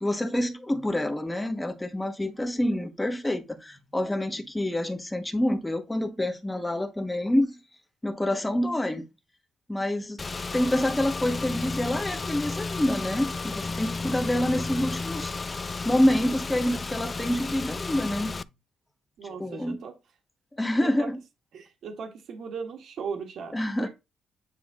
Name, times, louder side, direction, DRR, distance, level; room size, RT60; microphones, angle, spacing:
voice 1, 0.0-7.6 8.0-9.1 9.7-10.2 10.5-15.3 15.8-18.4 19.3-19.8 20.6-21.2 23.5-23.9, left 1 dB, 10° left, 1.2 m, -27 dB
Car / Engine, 10.2-18.4, left 3 dB, 25° left, 0.3 m, -33 dB
voice 2, 19.2-19.9 20.8-21.1 21.5-23.9, right 6 dB, 70° right, 1.8 m, -37 dB
9.3 x 3.5 x 3.7 m
cardioid pair, 125°, 0 cm